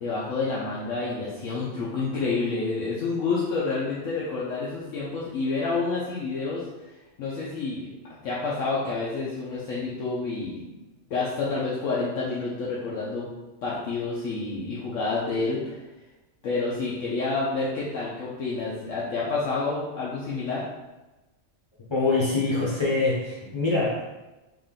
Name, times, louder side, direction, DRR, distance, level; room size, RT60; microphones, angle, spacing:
voice 1, 0.0-6.7 7.2-10.6 11.1-13.3 13.6-15.8 16.4-20.6, left 3 dB, 80° left, -7 dB, 1.1 m, -29 dB
voice 2, 21.9-24.1, left 3 dB, 25° left, -6 dB, 0.7 m, -24 dB
3.5 x 2.6 x 3.7 m, 1.1 s
omnidirectional pair, 1.3 m